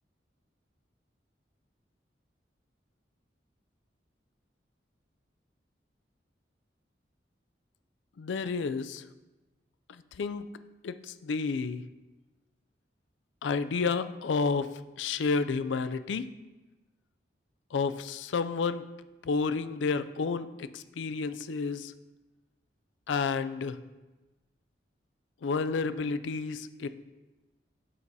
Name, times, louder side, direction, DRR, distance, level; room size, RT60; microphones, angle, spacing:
voice 1, 8.2-9.1 9.9-10.5 10.8-11.8 13.4-16.3 17.7-18.8 19.2-21.9 23.1-23.8 25.4-26.9, left 4 dB, 90° left, 13 dB, 0.4 m, -31 dB
7.5 x 4.0 x 4.6 m, 1.1 s
head